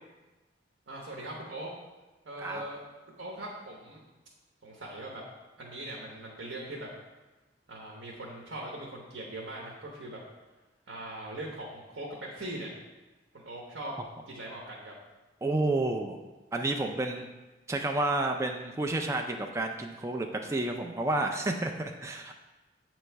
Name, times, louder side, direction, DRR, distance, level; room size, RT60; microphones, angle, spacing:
voice 1, 0.9-1.7 2.2-4.0 4.6-5.2 5.6-6.9 7.7-10.2 10.9-12.7 13.3-13.9 14.3-14.9, right 1 dB, 75° right, -2 dB, 0.9 m, -41 dB
voice 2, 15.4-16.2 16.5-17.3 17.7-22.3, right 2 dB, 15° right, 3 dB, 0.3 m, -30 dB
7.6 x 3.1 x 4.5 m, 1.1 s
head